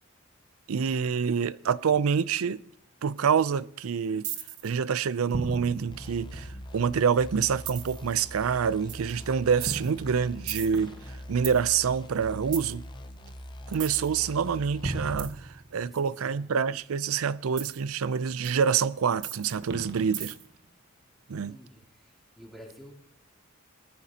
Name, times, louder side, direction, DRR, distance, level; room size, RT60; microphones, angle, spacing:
voice 1, 0.7-2.6 3.0-4.3 4.6-10.9 11.3-12.8 13.7-20.4 21.3-21.6, right 6 dB, 85° right, 0.5 m, -27 dB
sound 1, 4.2-4.7 5.3-6.9 7.7-8.1 8.9-9.1 9.6-11.6 12.5-12.7 13.7-14.1 14.8-16.0 17.6-17.8 18.4-18.5 19.2-20.6, right 5 dB, 60° right, 1.1 m, -36 dB
sound 2, 5.9-15.3, equal, 20° left, 0.6 m, -43 dB
voice 2, 15.8-16.5 21.5-22.9, equal, ahead, 3.1 m, -50 dB
20.5 x 14.0 x 2.9 m
head